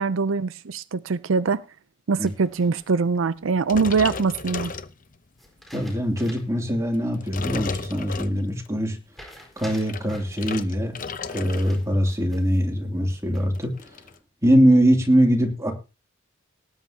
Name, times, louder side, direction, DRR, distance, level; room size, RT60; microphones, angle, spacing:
voice 1, 0.0-1.6 2.1-4.7, right 4 dB, 90° right, 0.6 m, -23 dB
sound 1, 2.3-3.2 5.4-6.6 7.0-7.1 9.1-10.4 11.5-12.6 13.1-13.7, equal, ahead, 4.5 m, -46 dB
sound 2, 3.6-5.4 5.9-6.2 6.9-8.7 9.6-11.8 12.1-12.4 12.7-12.8 13.0-14.1, left 4 dB, 45° left, 0.8 m, -34 dB
voice 2, 5.7-9.0 9.6-11.0 11.3-13.7 14.4-15.7, equal, 15° right, 3.0 m, -22 dB
19.0 x 9.9 x 2.9 m
head